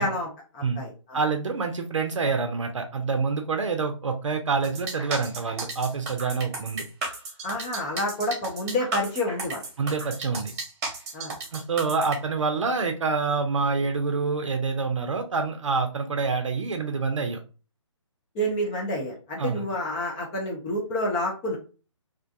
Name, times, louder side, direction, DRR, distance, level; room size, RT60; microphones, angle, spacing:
voice 1, 0.0-1.2 7.4-9.7 11.1-11.3 18.3-21.6, left 1 dB, 10° left, -1 dB, 0.3 m, -29 dB
voice 2, 1.1-6.9 9.8-10.5 11.5-17.4 19.4-19.6, right 4 dB, 70° right, 5 dB, 0.5 m, -27 dB
sound 1, 4.6-12.2, right 3 dB, 30° right, 0.9 m, -34 dB
2.4 x 2.2 x 2.5 m, 0.33 s
figure-of-eight pair, 140°, 16 cm